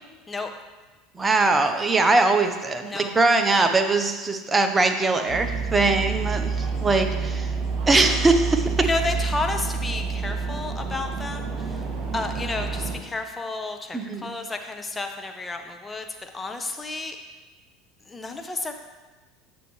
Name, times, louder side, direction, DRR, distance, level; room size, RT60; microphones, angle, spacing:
voice 1, 1.1-7.5 7.8-8.8 13.9-14.3, right 3 dB, 20° right, 6 dB, 0.9 m, -21 dB
sound 1, 5.3-13.0, right 5 dB, 50° right, 2.3 m, -28 dB
voice 2, 8.8-11.8 12.1-17.2 18.1-18.7, left 3 dB, 20° left, 5 dB, 0.9 m, -31 dB
9.1 x 6.7 x 3.2 m, 1.2 s
hypercardioid pair, 80°, 0 cm